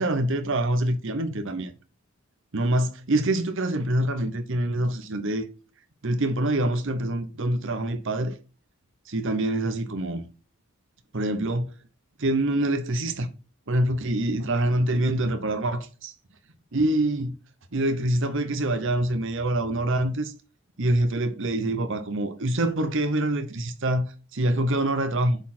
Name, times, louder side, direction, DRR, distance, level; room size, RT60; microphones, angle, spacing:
voice 1, 0.0-1.7 2.5-5.4 6.0-8.4 9.1-10.3 11.1-11.7 12.2-13.3 13.7-16.1 16.7-17.4 17.7-20.3 20.8-25.4, right 1 dB, 55° right, 0.9 m, -25 dB
8.1 x 4.2 x 4.2 m
head